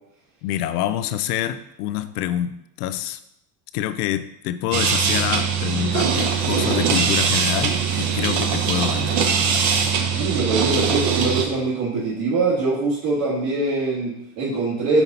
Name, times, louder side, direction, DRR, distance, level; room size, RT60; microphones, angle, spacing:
voice 1, 0.4-3.2 3.7-9.3, left 11 dB, 85° left, 12 dB, 0.6 m, -26 dB
sound 1, 4.7-11.5, right 6 dB, 35° right, 0.7 m, -21 dB
voice 2, 10.2-15.0, right 3 dB, 70° right, -7 dB, 2.1 m, -23 dB
5.8 x 4.0 x 4.1 m, 0.80 s
supercardioid pair, 150°, 45 cm